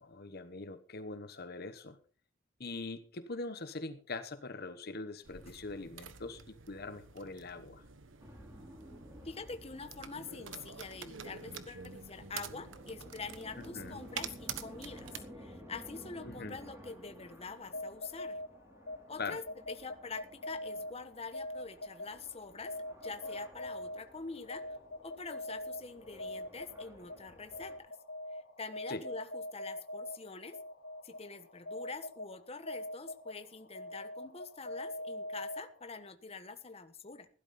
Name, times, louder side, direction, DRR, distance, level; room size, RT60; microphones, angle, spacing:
voice 1, 0.0-2.0 2.6-7.8 13.6-14.0 16.2-16.5 19.2-19.4 28.9-29.0, left 3 dB, 55° left, 11 dB, 1.1 m, -42 dB
sound 1, 5.2-15.2, right 7 dB, 75° right, 1.3 m, -48 dB
sound 2, 8.2-27.8, equal, 15° right, 3.6 m, -54 dB
voice 2, 9.2-18.4 19.1-22.8 23.0-24.6 25.0-27.9 28.3-30.6 31.0-37.3, left 4 dB, 30° left, 10 dB, 1.2 m, -45 dB
sound 3, 17.6-36.1, left 1 dB, 80° left, 3.1 m, -44 dB
16.5 x 12.0 x 4.2 m, 0.39 s
head